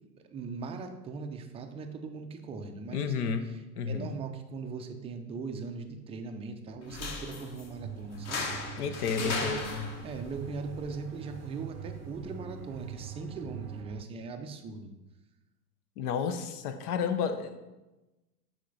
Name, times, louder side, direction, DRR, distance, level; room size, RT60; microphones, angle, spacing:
voice 1, 0.1-3.3 3.9-8.4 8.9-9.5 10.0-14.9, right 4 dB, 15° right, 5 dB, 0.4 m, -40 dB
voice 2, 2.9-3.5 3.7-4.1 8.8-9.9 16.0-17.6, left 6 dB, 65° left, 9 dB, 0.9 m, -31 dB
sound 1, 6.8-13.8, left 3 dB, 30° left, 1.1 m, -40 dB
sound 2, 7.7-14.0, right 10 dB, 65° right, 0.6 m, -44 dB
7.4 x 4.4 x 3.8 m, 1.1 s
hypercardioid pair, 100°, 49 cm